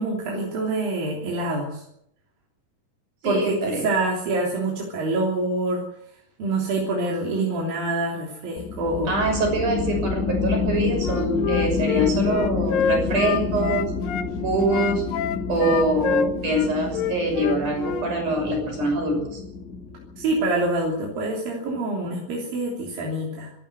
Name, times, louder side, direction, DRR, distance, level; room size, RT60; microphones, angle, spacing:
voice 1, 0.0-1.8 3.2-5.9 6.4-9.1 20.2-23.5, right 2 dB, 85° right, -2 dB, 5.0 m, -26 dB
voice 2, 3.2-3.9 9.1-13.8 14.4-15.0 15.5-19.4, right 2 dB, 60° right, 2 dB, 7.8 m, -24 dB
sound 1, 8.6-20.6, left 5 dB, 30° left, 1.6 m, -28 dB
Wind instrument woodwind instrument, 11.0-14.3 14.7-18.1, left 8 dB, 80° left, 2.8 m, -27 dB
25.5 x 13.5 x 8.0 m, 0.77 s
omnidirectional pair, 4.0 m